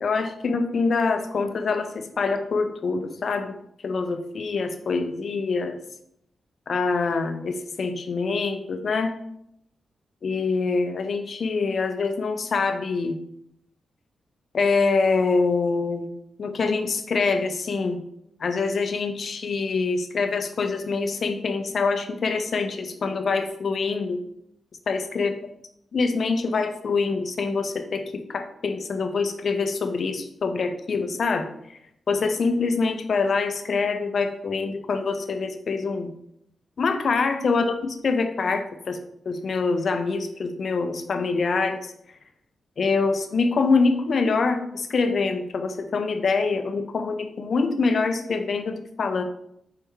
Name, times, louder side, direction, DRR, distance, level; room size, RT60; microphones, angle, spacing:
voice 1, 0.0-3.6 3.8-5.8 6.7-9.1 10.2-13.2 14.5-18.0 18.4-24.2 24.9-25.3 25.9-31.5 32.1-36.1 36.8-39.0 39.3-41.9 42.8-49.2, left 4 dB, 55° left, 7 dB, 0.5 m, -25 dB
4.7 x 3.3 x 3.0 m, 0.75 s
wide cardioid pair, 110°, 0 cm